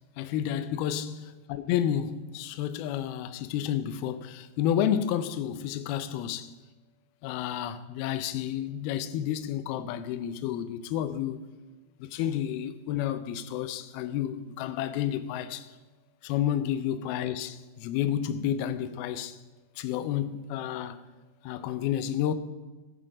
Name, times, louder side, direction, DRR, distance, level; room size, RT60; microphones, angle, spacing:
voice 1, 0.2-6.5 7.2-11.4 12.0-15.7 16.2-19.4 19.8-21.0 21.4-22.3, left 10 dB, 85° left, 2.2 m, -30 dB
16.0 x 8.8 x 5.0 m
omnidirectional pair, 5.3 m